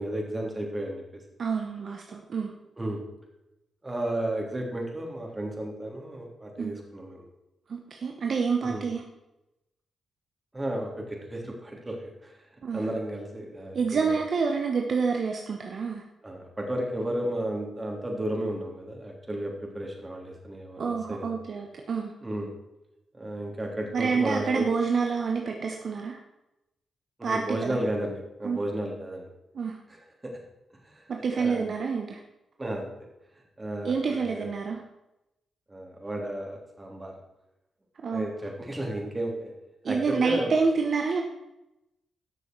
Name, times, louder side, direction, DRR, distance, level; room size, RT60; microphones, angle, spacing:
voice 1, 0.0-1.2 2.8-3.0 3.8-7.2 8.6-8.8 10.5-12.3 12.7-14.1 16.2-21.3 22.2-22.5 23.2-24.7 27.2-29.3 30.2-30.4 30.8-31.0 31.4-31.7 32.6-32.9 33.6-34.4 35.7-37.1 38.1-39.5 39.9-40.5, right 1 dB, 25° right, 0 dB, 3.3 m, -33 dB
voice 2, 1.4-2.5 6.6-6.7 7.7-9.0 12.6-12.8 13.7-16.0 20.8-22.1 23.9-26.2 27.2-27.8 28.4-28.6 29.5-29.8 31.1-32.2 33.8-34.8 38.0-38.3 39.8-41.2, right 5 dB, 60° right, 2 dB, 1.1 m, -28 dB
13.0 x 6.4 x 4.6 m, 0.91 s
hypercardioid pair, 45°, 0 cm